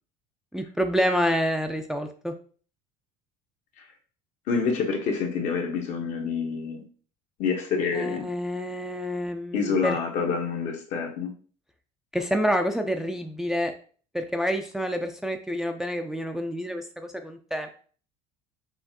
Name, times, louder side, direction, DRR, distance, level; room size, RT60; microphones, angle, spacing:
voice 1, 0.5-2.3 7.9-10.0 12.1-13.7 14.1-17.7, equal, 5° right, 5 dB, 0.4 m, -28 dB
voice 2, 4.5-6.8 7.4-8.3 9.5-11.3, left 5 dB, 60° left, 3 dB, 1.1 m, -27 dB
5.5 x 2.4 x 2.8 m, 0.42 s
supercardioid pair, 115°, 14 cm